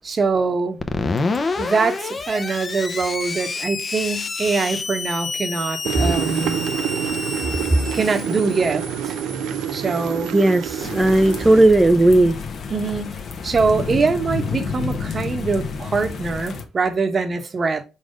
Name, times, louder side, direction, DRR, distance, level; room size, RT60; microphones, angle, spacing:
voice 1, 0.0-0.8 1.6-6.6 7.9-9.1 9.7-10.3 12.7-17.8, right 4 dB, 40° right, 1.1 m, -23 dB
Screech, 0.8-11.3, left 4 dB, 35° left, 0.8 m, -29 dB
sound 1, 5.8-11.6, right 9 dB, 85° right, 0.6 m, -27 dB
voice 2, 10.3-12.4, right 2 dB, 15° right, 0.5 m, -15 dB
sound 2, 10.8-16.6, left 5 dB, 60° left, 1.2 m, -30 dB
4.8 x 4.1 x 5.1 m
cardioid pair, 90°, 0 cm